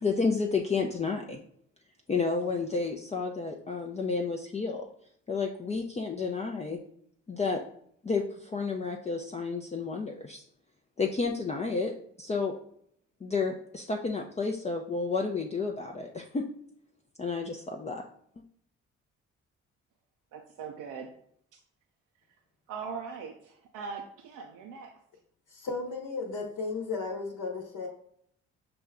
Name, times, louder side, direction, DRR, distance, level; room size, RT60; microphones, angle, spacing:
voice 1, 0.0-1.4 2.1-4.9 5.3-6.8 7.3-7.6 8.0-10.4 11.0-11.9 12.2-12.5 13.2-16.4 17.2-18.0, left 4 dB, 20° left, 1 dB, 0.5 m, -31 dB
voice 2, 20.3-21.1 21.5-21.6 22.7-25.0, right 5 dB, 60° right, 2 dB, 0.6 m, -41 dB
voice 3, 25.5-27.9, left 4 dB, 55° left, 1 dB, 1.1 m, -34 dB
5.9 x 2.2 x 3.6 m, 0.67 s
hypercardioid pair, 45°, 36 cm